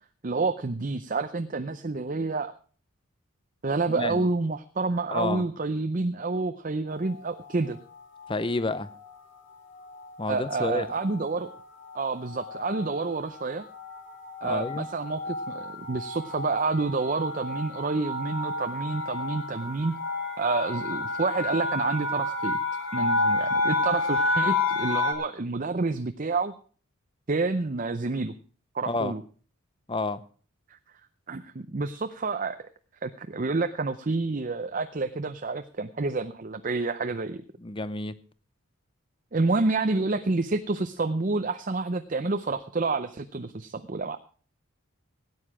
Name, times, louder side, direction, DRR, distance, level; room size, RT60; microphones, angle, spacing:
voice 1, 0.2-2.5 3.6-7.8 10.3-11.5 11.9-13.6 14.4-19.9 20.4-22.6 22.9-26.5 27.3-28.3 28.7-29.2 31.3-32.6 33.0-37.4 39.3-44.2, right 3 dB, 40° right, 8 dB, 0.6 m, -28 dB
voice 2, 3.9-4.3 5.1-5.4 8.3-8.9 10.2-10.9 14.4-14.9 28.9-29.1 29.9-30.2 37.6-38.2, left 2 dB, 25° left, 14 dB, 0.6 m, -29 dB
sound 1, 7.0-7.5 8.2-8.6 8.9-9.1 9.4-25.1, left 2 dB, 55° left, 2.6 m, -31 dB
17.0 x 9.6 x 4.9 m, 0.41 s
head